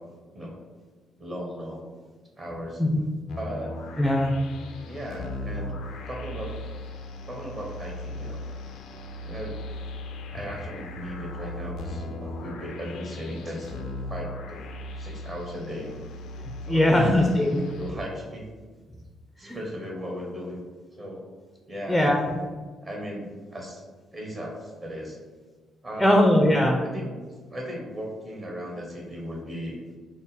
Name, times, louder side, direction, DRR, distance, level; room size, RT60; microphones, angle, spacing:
voice 1, 1.2-1.9 2.4-2.8 3.4-3.7 4.9-5.7 6.1-6.5 7.3-8.4 9.2-9.6 10.3-14.6 15.0-16.0 16.7-17.3 17.7-18.5 19.4-20.6 21.0-21.2 21.7-22.1 22.8-23.8 24.1-25.2 25.8-26.4 26.8-27.2 27.5-29.8, equal, 35° right, -1 dB, 0.9 m, -36 dB
sound 1, 3.3-17.9, left 1 dB, 80° left, 0.4 m, -38 dB
voice 2, 4.0-4.3 16.7-17.6 19.4-19.6 21.9-22.4 26.0-26.8, left 1 dB, 5° left, 1 dB, 0.4 m, -20 dB
3.7 x 2.1 x 4.0 m, 1.4 s
cardioid pair, 90°, 0 cm